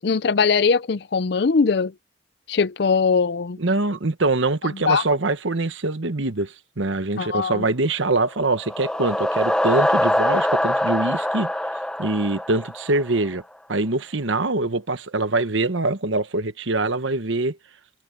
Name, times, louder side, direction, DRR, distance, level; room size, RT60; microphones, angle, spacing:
voice 1, 0.0-1.9 2.5-3.6 4.9-5.0 7.2-7.6, left 5 dB, 55° left, 0.5 m, -20 dB
voice 2, 3.6-11.5 12.0-13.4 13.7-17.6, right 2 dB, 75° right, 1.2 m, -24 dB
sound 1, 8.3-13.2, left 1 dB, 5° left, 0.7 m, -23 dB
head